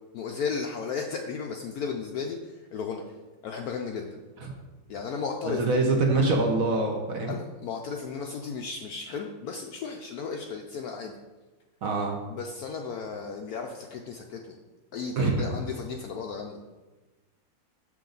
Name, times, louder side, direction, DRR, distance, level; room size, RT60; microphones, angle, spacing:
voice 1, 0.1-3.0 3.4-4.2 4.9-5.7 7.3-11.1 12.3-14.6 14.9-16.6, left 5 dB, 70° left, 3 dB, 0.9 m, -34 dB
voice 2, 5.5-7.4 11.8-12.2 15.2-15.4, right 3 dB, 55° right, 1 dB, 1.1 m, -24 dB
6.7 x 6.2 x 3.9 m, 1.2 s
omnidirectional pair, 2.0 m